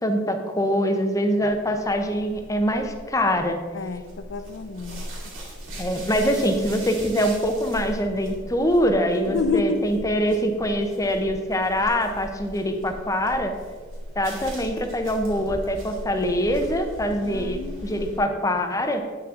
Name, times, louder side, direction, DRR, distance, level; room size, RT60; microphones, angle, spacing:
voice 1, 0.0-3.6 5.8-13.5 14.2-19.0, equal, 15° left, 5 dB, 0.6 m, -24 dB
sound 1, 1.4-18.2, equal, 90° right, 2.4 m, -39 dB
voice 2, 3.7-5.0 9.3-9.8 17.2-18.1, left 4 dB, 65° left, 11 dB, 0.5 m, -29 dB
9.0 x 5.9 x 3.7 m, 1.5 s
head